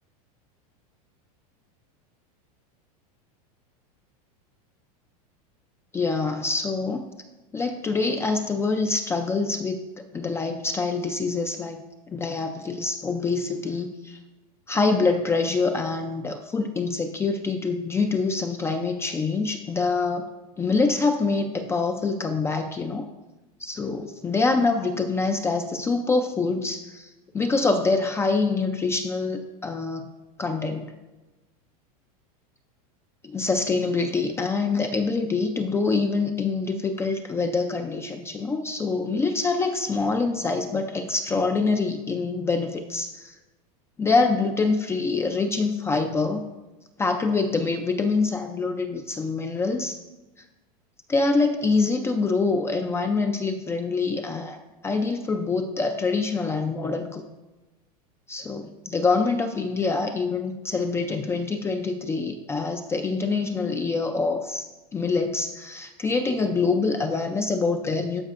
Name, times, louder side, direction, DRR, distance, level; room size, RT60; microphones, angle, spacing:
voice 1, 5.9-7.0 7.5-9.8 10.1-11.8 12.1-14.2 14.7-20.3 20.6-23.1 23.6-27.1 27.3-30.1 30.4-30.9 33.2-43.3 44.0-46.4 47.0-50.0 51.1-57.2 58.3-64.7 64.9-68.2, left 4 dB, 15° left, 6 dB, 0.3 m, -25 dB
12.5 x 4.7 x 2.4 m, 1.1 s
supercardioid pair, 130°, 20 cm